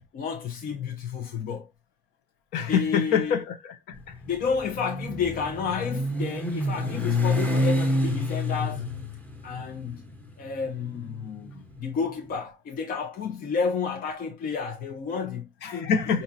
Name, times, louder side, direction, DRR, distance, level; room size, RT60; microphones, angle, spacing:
voice 1, 0.1-1.7 2.6-3.4 4.3-8.9 9.4-10.0 10.4-15.9 16.1-16.2, left 6 dB, 55° left, 1.0 m, -31 dB
voice 2, 2.5-4.2 15.6-16.2, left 7 dB, 90° left, 1.0 m, -26 dB
Motorcycle, 3.9-12.1, left 1 dB, 10° left, 1.2 m, -29 dB
5.7 x 2.8 x 2.7 m
cardioid pair, 110°, 17 cm